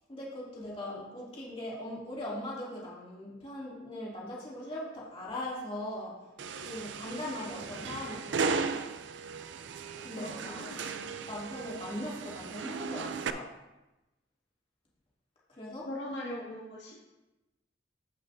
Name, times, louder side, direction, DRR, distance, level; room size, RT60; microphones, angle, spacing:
voice 1, 0.1-6.3 6.6-8.8 10.0-13.5 15.5-15.9, left 1 dB, 30° left, -6 dB, 2.5 m, -40 dB
sound 1, 6.4-13.3, right 5 dB, 85° right, 0.5 m, -36 dB
voice 2, 10.2-11.1 15.9-16.9, left 1 dB, 75° left, -4 dB, 1.9 m, -41 dB
15.5 x 5.4 x 2.7 m, 1.0 s
head